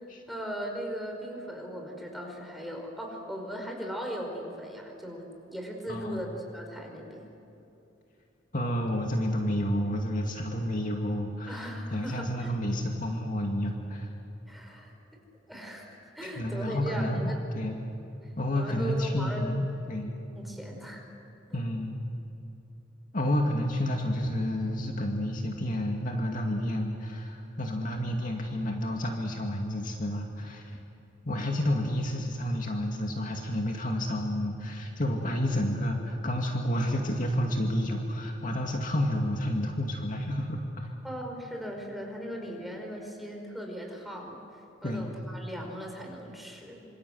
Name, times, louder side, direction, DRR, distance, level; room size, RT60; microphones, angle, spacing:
voice 1, 0.3-7.3 11.5-12.6 14.5-15.2 15.5-17.4 18.2-19.4 20.4-21.0 21.5-21.6 41.0-44.4 44.8-46.9, equal, ahead, 1 dB, 5.3 m, -38 dB
voice 2, 5.9-6.2 8.5-14.1 16.2-17.8 18.4-20.1 21.5-22.0 23.1-30.8 31.2-40.9 44.8-45.1, left 1 dB, 45° left, 1 dB, 2.3 m, -30 dB
27.0 x 27.0 x 8.0 m, 2.9 s
head